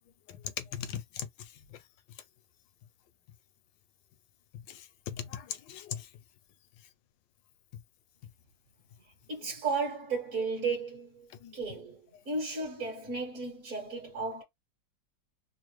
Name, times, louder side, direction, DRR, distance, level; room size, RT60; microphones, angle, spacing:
voice 1, 0.3-1.8 4.7-6.1 11.4-11.5, left 9 dB, 80° left, 1.3 m, -40 dB
voice 2, 9.3-11.3 11.5-14.4, right 4 dB, 50° right, 1.6 m, -34 dB
3.7 x 2.0 x 3.1 m
omnidirectional pair, 1.9 m